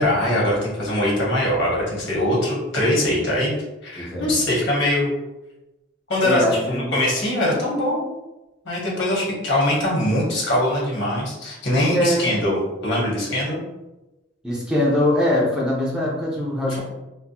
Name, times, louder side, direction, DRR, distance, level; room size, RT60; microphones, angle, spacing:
voice 1, 0.0-3.5 3.8-5.1 6.1-8.1 8.6-13.6, left 1 dB, 75° left, -4 dB, 1.4 m, -22 dB
voice 2, 4.0-4.4 6.2-7.0 11.9-12.3 14.4-16.8, left 1 dB, 5° right, -5 dB, 0.7 m, -22 dB
4.1 x 2.2 x 2.8 m, 1.0 s
head